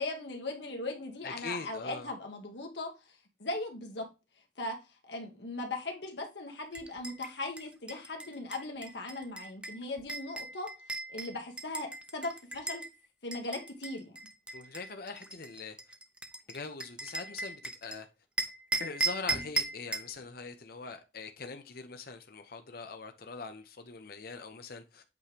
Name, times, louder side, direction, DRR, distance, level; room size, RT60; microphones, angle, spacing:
voice 1, 0.0-2.9 3.4-4.1 4.6-4.8 5.1-10.7 11.1-12.8 13.2-14.1, left 2 dB, 75° left, 1.5 m, -38 dB
voice 2, 1.2-2.1 14.5-15.8 16.5-18.1 18.8-25.0, left 4 dB, 60° left, 0.8 m, -42 dB
sound 1, 6.7-12.9 13.3-18.0 18.4-20.1, right 3 dB, 5° right, 0.7 m, -37 dB
8.4 x 3.2 x 5.0 m
head